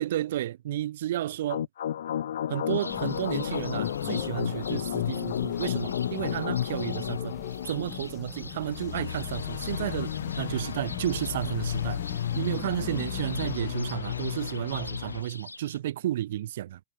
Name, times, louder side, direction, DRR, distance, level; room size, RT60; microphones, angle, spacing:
voice 1, 0.0-1.6 2.5-7.3 7.6-16.8, right 13 dB, 55° right, 1.0 m, -32 dB
sound 1, 1.5-15.2, left 10 dB, 60° left, 0.6 m, -32 dB
sound 2, 2.7-15.8, left 3 dB, 85° left, 1.8 m, -46 dB
sound 3, 2.9-13.6, left 8 dB, 20° left, 3.6 m, -45 dB
figure-of-eight pair, 105°, 0 cm